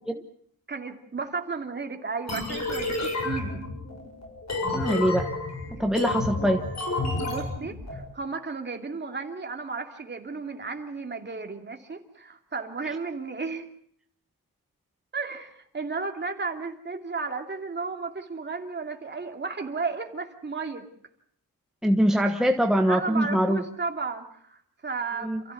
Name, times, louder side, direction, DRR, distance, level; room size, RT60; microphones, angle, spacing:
voice 1, 0.7-3.6 7.3-13.7 15.1-20.9 22.9-25.5, right 4 dB, 30° right, 4 dB, 2.6 m, -34 dB
sound 1, 2.3-8.0, left 2 dB, 45° left, 7.1 m, -30 dB
voice 2, 4.7-5.3 5.8-6.6 21.8-23.6 25.2-25.4, equal, ahead, 4 dB, 1.2 m, -23 dB
28.5 x 15.0 x 8.5 m, 0.65 s
wide cardioid pair, 155°, 36 cm